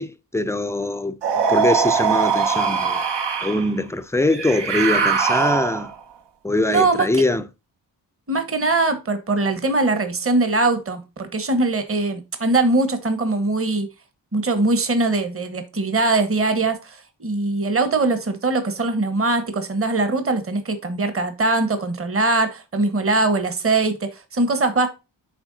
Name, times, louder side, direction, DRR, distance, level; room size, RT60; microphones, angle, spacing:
voice 1, 0.0-3.0 3.4-5.9 6.4-7.4, left 2 dB, 5° left, 0.4 m, -23 dB
sound 1, 1.2-3.7 4.3-6.0, right 6 dB, 70° right, 1.0 m, -21 dB
voice 2, 6.7-7.2 8.3-13.9 14.3-24.9, right 3 dB, 30° right, 1.1 m, -21 dB
9.1 x 3.5 x 4.0 m
cardioid pair, 75°, 44 cm